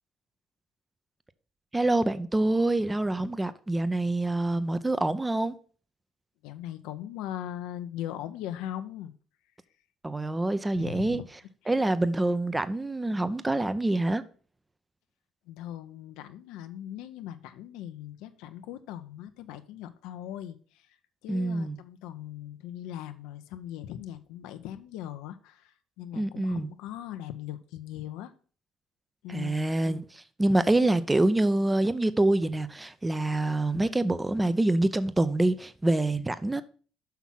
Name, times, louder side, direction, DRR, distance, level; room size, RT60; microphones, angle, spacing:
voice 1, 1.7-5.5 10.0-11.2 11.7-14.2 21.3-21.8 26.1-26.7 29.3-36.6, right 2 dB, 15° right, 0.6 m, -26 dB
voice 2, 6.4-9.1 10.8-11.2 11.6-11.8 15.5-21.0 21.2-28.3 29.2-29.7, left 11 dB, 80° left, 0.6 m, -40 dB
6.0 x 5.8 x 5.7 m
supercardioid pair, 75°, 0 cm